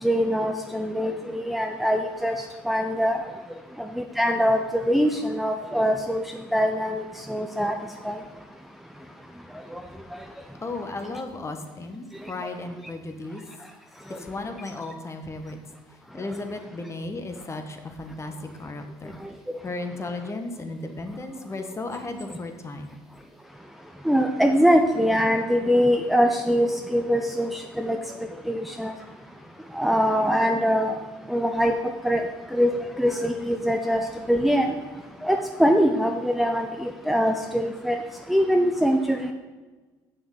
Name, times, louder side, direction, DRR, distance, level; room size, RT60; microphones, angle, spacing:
voice 1, 0.0-2.4 2.7-3.2 3.8-6.2 6.5-7.8 8.0-8.2 9.7-9.8 12.4-12.5 24.0-28.0 28.5-28.9 29.7-30.9 31.3-31.7 32.0-32.2 32.5-34.0 34.3-34.7 35.2-38.0 38.3-39.3, equal, ahead, 4 dB, 0.7 m, -23 dB
voice 2, 10.6-13.4 14.2-15.6 16.1-18.3 18.6-19.2 19.6-22.9, left 2 dB, 30° left, 6 dB, 1.4 m, -35 dB
6.8 x 6.4 x 7.6 m, 1.3 s
hypercardioid pair, 65°, 10 cm